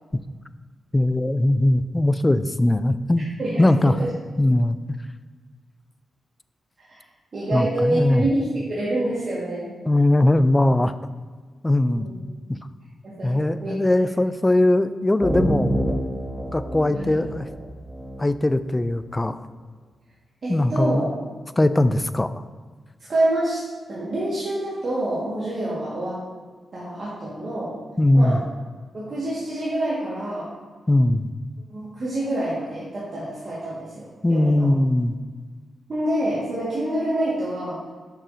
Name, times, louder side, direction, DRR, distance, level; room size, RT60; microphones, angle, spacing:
voice 1, 0.9-3.3 3.6-4.0 4.4-4.8 7.5-8.2 9.9-10.9 11.6-12.1 12.5-12.6 13.2-15.9 16.5-17.5 18.2-19.4 20.5-21.1 21.6-22.3 28.0-28.4 30.9-31.3 34.2-35.2, left 1 dB, 20° left, 13 dB, 0.3 m, -20 dB
voice 2, 3.4-4.1 6.9-7.0 7.3-9.7 11.9-12.1 13.0-14.1 17.1-17.2 20.4-21.1 23.1-23.6 23.9-26.2 26.7-27.8 28.1-28.4 28.9-30.5 31.7-34.7 35.9-37.8, right 1 dB, 55° right, -8 dB, 1.7 m, -27 dB
sound 1, 15.2-18.8, equal, 20° right, 1.4 m, -27 dB
6.3 x 6.0 x 2.7 m, 1.5 s
supercardioid pair, 50°, 0 cm